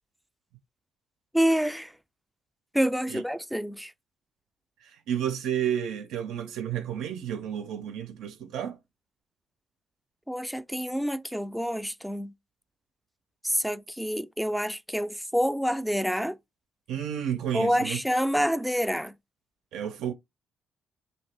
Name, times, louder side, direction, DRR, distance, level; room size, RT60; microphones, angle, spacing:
voice 1, 1.3-1.9 2.7-3.9 10.3-12.3 13.4-16.4 17.5-19.1, equal, ahead, 0.3 m, -27 dB
voice 2, 4.8-8.8 16.9-18.0 19.7-20.1, right 9 dB, 90° right, 0.4 m, -31 dB
2.8 x 2.6 x 3.2 m
cardioid pair, 90°, 0 cm